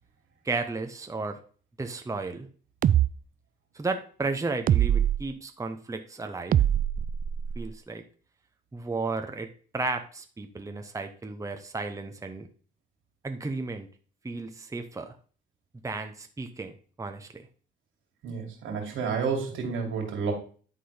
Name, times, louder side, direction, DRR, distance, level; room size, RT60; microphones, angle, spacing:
voice 1, 0.4-1.4 1.8-2.5 3.7-6.6 7.5-8.0 8.7-12.5 13.2-13.9 14.2-15.2 15.8-17.5, right 3 dB, 15° right, 6 dB, 0.9 m, -34 dB
sound 1, 2.8-3.1 4.7-5.2 6.5-7.7, right 10 dB, 45° right, 0.4 m, -23 dB
voice 2, 18.2-20.3, right 5 dB, 85° right, 1 dB, 2.5 m, -30 dB
10.5 x 3.8 x 5.0 m, 0.41 s
cardioid pair, 90°, 20 cm